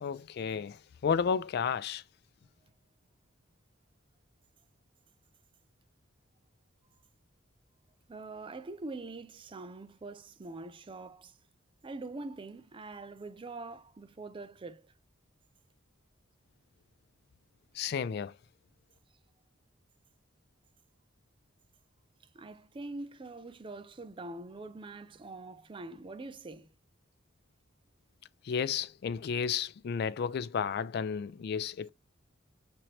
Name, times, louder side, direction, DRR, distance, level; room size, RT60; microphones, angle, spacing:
voice 1, 0.0-2.0 17.7-18.3 28.4-31.9, left 6 dB, 50° left, 0.3 m, -32 dB
voice 2, 8.1-11.4 11.8-14.9 22.3-26.7, right 2 dB, 25° right, 0.4 m, -44 dB
6.2 x 2.9 x 2.9 m
head